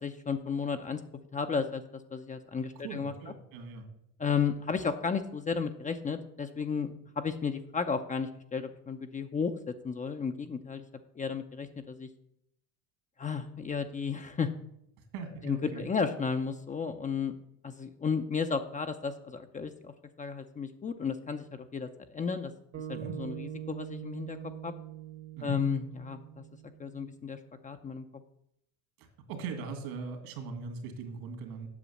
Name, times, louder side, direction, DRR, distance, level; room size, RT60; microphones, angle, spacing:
voice 1, 0.0-1.0 1.3-3.1 4.2-10.8 11.2-12.1 13.2-14.5 15.4-17.4 17.6-19.9 20.2-22.5 23.2-24.4 24.6-24.7 25.4-26.4 26.8-28.0, left 5 dB, 20° left, 7 dB, 0.6 m, -33 dB
voice 2, 2.8-3.9 15.1-15.9 22.9-23.2 25.4-25.6 29.0-31.7, right 5 dB, 65° right, 6 dB, 2.4 m, -40 dB
sound 1, 22.7-27.1, right 11 dB, 40° right, 1.1 m, -43 dB
8.3 x 6.1 x 7.2 m, 0.76 s
supercardioid pair, 115°, 39 cm